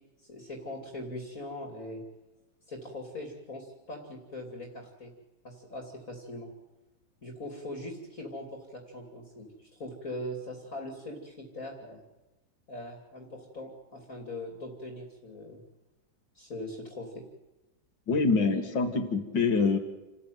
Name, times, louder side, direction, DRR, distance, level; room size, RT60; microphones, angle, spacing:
voice 1, 0.2-2.0 2.7-5.1 5.4-6.5 7.2-12.0 12.7-15.6 16.3-17.2, left 1 dB, 45° left, 1 dB, 3.0 m, -41 dB
voice 2, 18.1-19.8, left 4 dB, 80° left, 6 dB, 2.7 m, -25 dB
29.0 x 13.5 x 9.3 m, 1.1 s
omnidirectional pair, 1.9 m